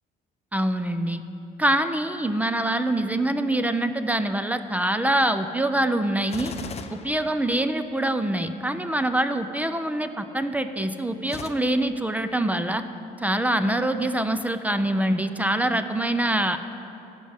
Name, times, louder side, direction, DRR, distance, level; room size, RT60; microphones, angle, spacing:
voice 1, 0.5-1.2 1.6-6.5 6.9-12.8 13.2-16.6, right 1 dB, 10° right, 9 dB, 0.4 m, -24 dB
Gunshot gunfire, 6.2-8.0 11.2-11.5, left 6 dB, 40° left, 0.6 m, -38 dB
13.0 x 5.2 x 8.8 m, 2.9 s
cardioid pair, 110°, 17 cm